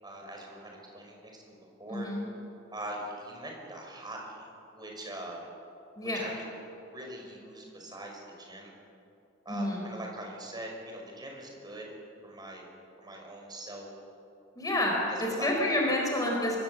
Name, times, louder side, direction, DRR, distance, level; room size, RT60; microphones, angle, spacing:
voice 1, 0.0-2.1 2.7-5.5 6.0-6.4 6.8-8.7 9.4-11.9 12.2-12.7 13.0-13.9 15.3-15.5 15.8-16.1, right 1 dB, 20° right, 0 dB, 5.8 m, -42 dB
voice 2, 1.9-2.2 6.0-6.3 9.5-9.9 14.6-16.6, left 1 dB, 20° left, -1 dB, 4.2 m, -29 dB
24.5 x 23.0 x 8.0 m, 2.7 s
head